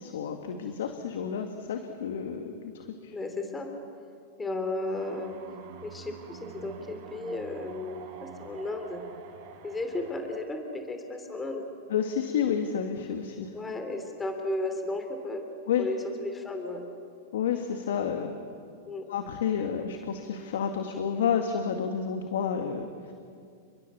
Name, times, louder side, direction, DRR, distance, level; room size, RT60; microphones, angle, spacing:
voice 1, 0.0-2.7 3.0-3.2 11.9-13.5 15.7-15.9 17.3-18.3 19.1-22.9, left 7 dB, 75° left, 5 dB, 2.0 m, -30 dB
voice 2, 3.1-3.7 4.4-5.3 5.8-9.0 9.6-11.6 13.5-15.5 15.8-16.9 18.8-19.0, left 2 dB, 15° left, 5 dB, 3.2 m, -34 dB
sound 1, 4.9-10.3, right 7 dB, 55° right, 4.6 m, -47 dB
30.0 x 22.5 x 7.0 m, 2.3 s
hypercardioid pair, 130°, 0 cm